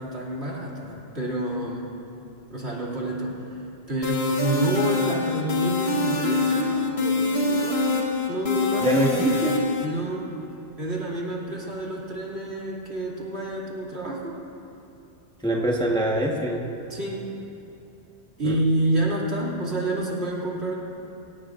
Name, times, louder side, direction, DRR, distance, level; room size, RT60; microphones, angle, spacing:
voice 1, 0.0-1.9 2.5-3.6 3.9-9.0 9.8-10.3 10.8-14.4 16.9-17.3 18.4-20.7, right 1 dB, 60° right, -4 dB, 2.9 m, -28 dB
sound 1, 4.0-9.9, left 3 dB, 60° left, 1.6 m, -25 dB
voice 2, 8.8-9.6 15.4-16.7 18.4-18.6, right 1 dB, 5° left, -2 dB, 1.2 m, -24 dB
24.0 x 17.5 x 2.6 m, 2.8 s
omnidirectional pair, 1.2 m